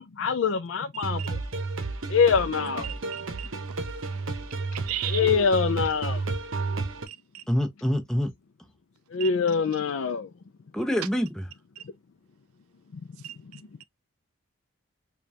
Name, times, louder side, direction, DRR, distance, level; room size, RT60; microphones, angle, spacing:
voice 1, 0.0-1.4 2.1-2.9 5.1-6.2 9.1-10.3, left 6 dB, 65° left, 0.4 m, -24 dB
voice 2, 0.9-1.3 2.8-3.5 4.7-5.3 7.1-7.4 9.2-9.3 11.8-11.9 13.2-13.4, right 13 dB, 85° right, 0.4 m, -36 dB
sound 1, 1.0-7.1, right 3 dB, 65° right, 0.8 m, -31 dB
voice 3, 7.5-8.3 10.7-11.4, equal, 5° left, 0.6 m, -26 dB
5.1 x 2.3 x 2.8 m
head